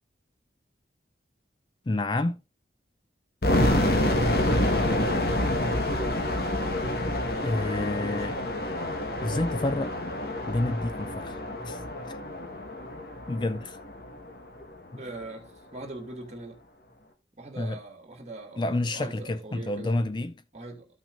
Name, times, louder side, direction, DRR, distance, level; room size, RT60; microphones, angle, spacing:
voice 1, 1.9-2.4 7.4-8.4 9.2-10.0 10.5-11.8 13.3-13.8 17.6-17.8 18.6-20.3, left 2 dB, 25° left, 0.4 m, -29 dB
sound 1, 3.4-14.3, left 1 dB, 55° left, 1.4 m, -27 dB
voice 2, 8.1-8.5 14.9-16.6 17.4-20.0 20.5-20.9, right 2 dB, 40° right, 2.5 m, -42 dB
14.0 x 6.0 x 2.5 m
head